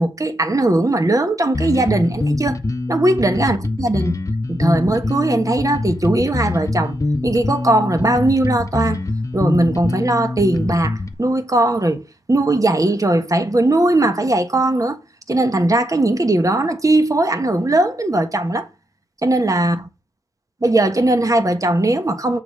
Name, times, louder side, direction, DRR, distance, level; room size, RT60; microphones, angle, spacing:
voice 1, 0.0-2.6 2.9-4.2 4.5-9.0 9.3-12.0 12.3-15.0 15.3-18.7 19.2-19.9 20.6-22.4, right 2 dB, 40° right, 1.3 m, -18 dB
Bass guitar, 1.5-11.1, left 2 dB, 35° left, 0.8 m, -24 dB
7.0 x 3.9 x 6.5 m
wide cardioid pair, 55°, 9 cm